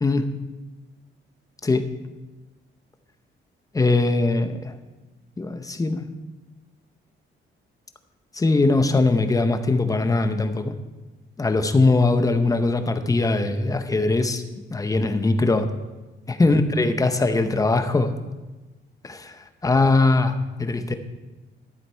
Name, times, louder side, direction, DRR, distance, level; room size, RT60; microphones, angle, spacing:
voice 1, 3.7-4.7 5.4-6.1 8.3-10.7 11.4-14.4 14.7-15.7 16.3-18.1 19.0-19.3 19.6-20.9, left 3 dB, 15° left, 9 dB, 0.7 m, -21 dB
12.5 x 7.8 x 4.5 m, 1.2 s
cardioid pair, 140°, 21 cm